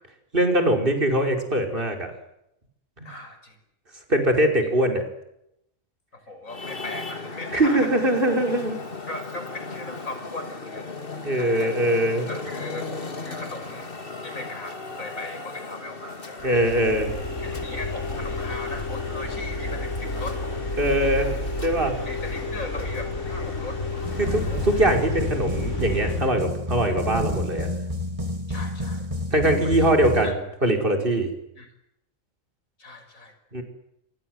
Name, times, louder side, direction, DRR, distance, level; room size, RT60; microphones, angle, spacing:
voice 1, 0.3-2.1 3.0-3.1 4.1-5.0 7.5-8.8 11.2-12.3 16.4-17.1 20.8-21.3 21.6-22.0 24.2-27.7 29.3-30.4 30.6-31.3 33.5-33.6, right 1 dB, 40° right, 4 dB, 5.4 m, -22 dB
voice 2, 3.0-3.6 4.6-4.7 6.1-8.0 9.1-10.9 11.4-11.8 12.3-12.9 13.2-13.9 14.2-16.7 17.4-20.4 22.1-23.8 24.1-24.7 28.5-29.1 29.6-29.9 30.2-30.4 31.6-31.7 32.8-33.4, left 2 dB, 80° left, 7 dB, 6.3 m, -38 dB
Traffic noise roadway noise, 6.5-25.1, left 3 dB, 40° left, 2.6 m, -38 dB
sound 1, 16.4-26.2, left 2 dB, 60° left, 7.0 m, -30 dB
sound 2, 24.0-30.3, left 1 dB, 25° right, 2.9 m, -30 dB
28.5 x 25.0 x 8.0 m, 0.82 s
omnidirectional pair, 1.4 m